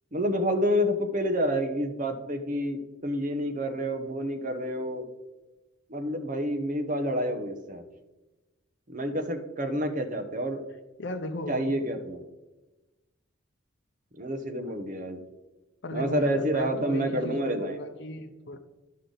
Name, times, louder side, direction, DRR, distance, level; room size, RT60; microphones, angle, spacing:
voice 1, 0.1-5.0 5.9-7.8 8.9-10.6 11.5-12.2 14.2-15.2 15.9-17.8, equal, 40° right, 6 dB, 0.8 m, -28 dB
voice 2, 11.0-11.8 15.8-18.6, left 1 dB, 55° left, 6 dB, 0.6 m, -36 dB
11.5 x 5.6 x 3.8 m, 1.1 s
head